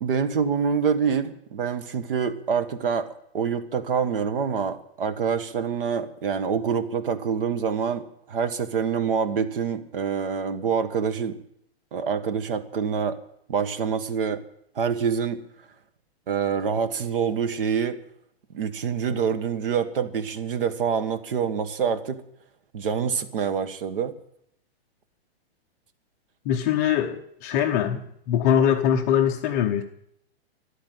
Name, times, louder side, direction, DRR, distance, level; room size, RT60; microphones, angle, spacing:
voice 1, 0.0-3.1 3.3-11.4 11.9-13.2 13.5-14.4 14.7-15.4 16.3-18.0 18.5-22.2 22.7-24.1, right 6 dB, 60° right, 11 dB, 1.6 m, -26 dB
voice 2, 26.5-28.0 28.3-29.8, left 9 dB, 15° left, 3 dB, 0.6 m, -22 dB
13.0 x 11.5 x 8.1 m, 0.73 s
hypercardioid pair, 170°, 32 cm